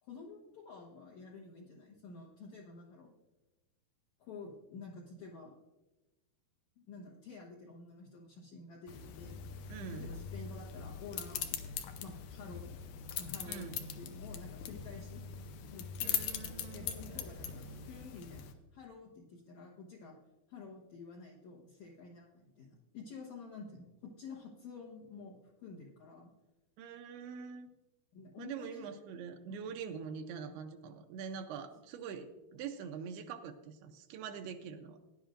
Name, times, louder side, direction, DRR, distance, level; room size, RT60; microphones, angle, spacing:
voice 1, 0.0-3.1 4.2-5.6 6.8-9.4 9.8-13.7 14.0-15.2 15.7-16.3 16.7-20.2 20.5-26.3 28.1-28.9 29.5-29.6, left 4 dB, 65° left, -3 dB, 2.0 m, -50 dB
sound 1, 8.9-18.5, left 8 dB, 90° left, 1.7 m, -41 dB
voice 2, 9.7-10.1 13.5-13.8 16.0-16.9 26.8-27.7 28.4-35.0, right 6 dB, 85° right, 5 dB, 2.7 m, -44 dB
sound 2, 16.1-18.8 19.1-19.3, right 5 dB, 70° right, 2.0 m, -57 dB
17.5 x 10.5 x 2.5 m, 1.0 s
omnidirectional pair, 4.5 m